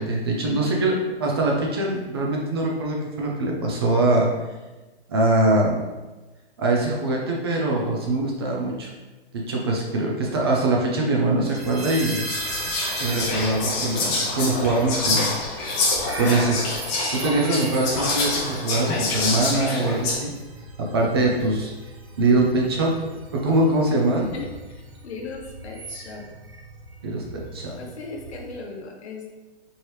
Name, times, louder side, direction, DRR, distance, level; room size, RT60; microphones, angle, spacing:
voice 1, 0.0-4.3 5.1-5.8 6.6-8.9 9.3-12.2 13.0-15.3 16.2-16.6 17.1-20.3 20.8-21.7 22.2-22.9 23.3-24.3 27.0-27.8, right 2 dB, 25° right, -1 dB, 0.4 m, -23 dB
Whispering, 11.4-11.5 12.0-20.1, left 3 dB, 20° left, 0.6 m, -26 dB
sound 1, 11.5-28.6, right 2 dB, 70° right, 1.3 m, -38 dB
voice 2, 24.3-26.2 27.8-29.3, left 4 dB, 90° left, 1 dB, 1.0 m, -37 dB
4.4 x 3.0 x 3.2 m, 1.2 s
hypercardioid pair, 160°, 32 cm